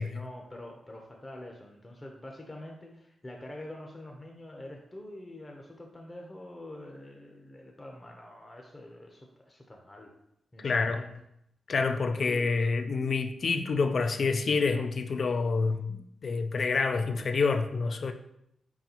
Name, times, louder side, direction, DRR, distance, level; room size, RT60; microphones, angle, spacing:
voice 1, 0.0-10.1 10.5-11.1 12.2-12.5, left 1 dB, 25° left, 0.7 m, -45 dB
voice 2, 10.6-11.0 11.7-18.1, left 4 dB, 60° left, 0.4 m, -28 dB
4.5 x 4.0 x 2.9 m
cardioid pair, 60°, 0 cm